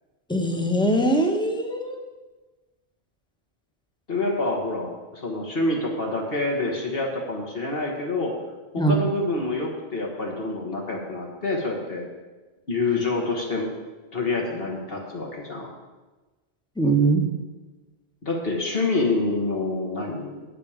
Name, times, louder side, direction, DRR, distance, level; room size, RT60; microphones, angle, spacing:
voice 1, 0.3-2.0 8.8-8.9 16.8-17.3, right 2 dB, 5° left, 3 dB, 1.0 m, -21 dB
voice 2, 4.1-8.3 8.7-12.0 12.7-13.7 14.1-15.7 18.2-20.4, left 2 dB, 60° left, -1 dB, 1.7 m, -27 dB
9.9 x 8.5 x 5.0 m, 1.2 s
omnidirectional pair, 1.1 m